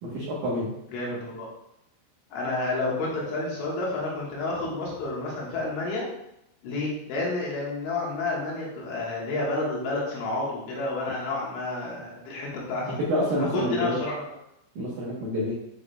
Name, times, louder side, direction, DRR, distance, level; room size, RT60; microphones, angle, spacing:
voice 1, 0.0-0.7 13.1-14.0 14.8-15.5, equal, 80° right, -6 dB, 1.9 m, -27 dB
voice 2, 0.9-1.5 2.3-6.1 6.6-13.0 13.5-14.2, left 2 dB, 75° left, -4 dB, 3.7 m, -30 dB
9.4 x 4.7 x 2.3 m, 0.82 s
omnidirectional pair, 5.8 m